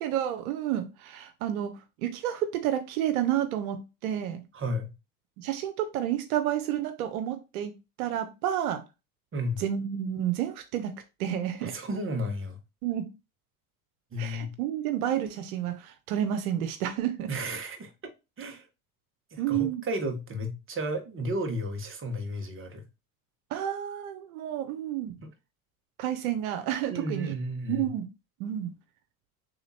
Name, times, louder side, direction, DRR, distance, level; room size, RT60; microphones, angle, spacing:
voice 1, 0.0-1.7 2.0-4.4 5.4-7.7 8.0-8.8 9.6-10.9 11.2-11.7 12.8-13.0 14.2-17.3 19.4-19.8 23.5-25.1 26.0-27.3 27.7-28.1 28.4-28.7, right 11 dB, 85° right, 0.7 m, -30 dB
voice 2, 4.5-4.9 9.3-9.6 11.6-12.6 14.1-14.5 17.3-17.9 18.4-18.7 19.3-22.8 25.2-25.3 26.9-27.9, equal, 30° right, 1.2 m, -33 dB
3.5 x 2.9 x 4.1 m
hypercardioid pair, 80°, 42 cm